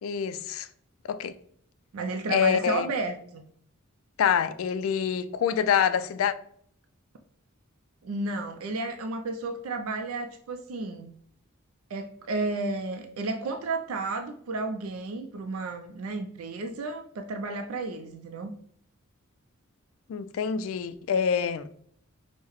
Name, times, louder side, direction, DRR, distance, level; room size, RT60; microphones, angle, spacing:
voice 1, 0.0-0.7 1.1-1.3 2.3-2.9 4.2-6.3 20.1-21.7, left 7 dB, 70° left, 0.3 m, -26 dB
voice 2, 1.9-3.4 8.0-11.1 11.9-18.5, right 3 dB, 85° right, 0.4 m, -32 dB
5.5 x 2.1 x 3.0 m
head